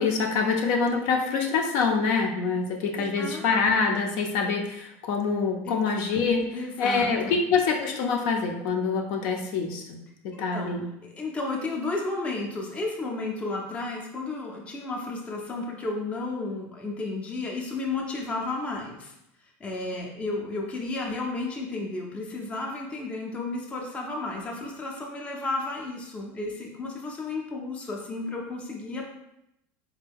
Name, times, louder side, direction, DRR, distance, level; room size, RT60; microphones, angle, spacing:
voice 1, 0.0-6.4 6.8-10.0 10.4-10.8, left 5 dB, 60° left, 2 dB, 0.6 m, -25 dB
voice 2, 2.9-3.4 5.6-5.8 6.5-7.4 10.3-10.7 11.0-19.1 19.6-29.0, left 2 dB, 15° left, -1 dB, 0.5 m, -33 dB
4.4 x 2.2 x 3.4 m, 0.83 s
supercardioid pair, 150°, 8 cm